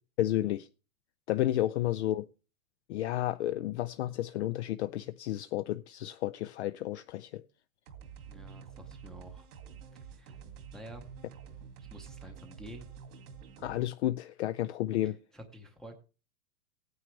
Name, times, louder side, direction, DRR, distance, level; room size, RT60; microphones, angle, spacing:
voice 1, 0.2-0.7 1.3-2.3 2.9-7.4 13.6-15.2, left 14 dB, 50° left, 0.5 m, -31 dB
sound 1, 7.9-13.9, right 7 dB, 85° right, 2.2 m, -48 dB
voice 2, 8.3-9.5 10.1-10.4 10.7-11.0 11.9-12.9 15.3-15.9, equal, ahead, 0.7 m, -49 dB
17.0 x 9.4 x 3.2 m
supercardioid pair, 170°, 43 cm